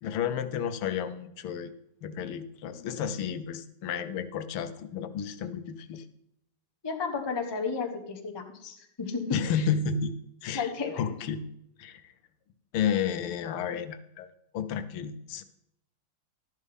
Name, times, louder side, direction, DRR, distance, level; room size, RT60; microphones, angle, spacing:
voice 1, 0.0-1.7 2.0-6.0 9.3-10.1 10.4-10.7 11.0-11.4 11.8-12.0 12.7-14.3 14.5-15.4, left 7 dB, 85° left, 11 dB, 1.7 m, -31 dB
voice 2, 6.8-9.7 10.5-11.0, left 5 dB, 25° left, 5 dB, 0.5 m, -33 dB
12.5 x 11.0 x 3.5 m, 0.77 s
omnidirectional pair, 2.4 m